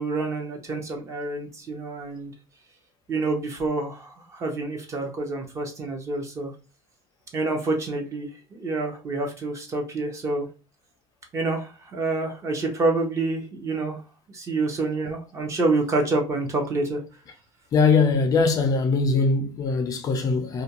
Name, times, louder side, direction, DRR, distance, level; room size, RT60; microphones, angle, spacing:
voice 1, 0.0-2.3 3.1-6.5 7.3-10.5 11.3-14.0 14.3-17.0, right 3 dB, 25° right, 0.7 m, -27 dB
voice 2, 17.7-20.6, left 4 dB, 30° left, 0.4 m, -21 dB
2.5 x 2.2 x 2.8 m
cardioid pair, 155°, 12 cm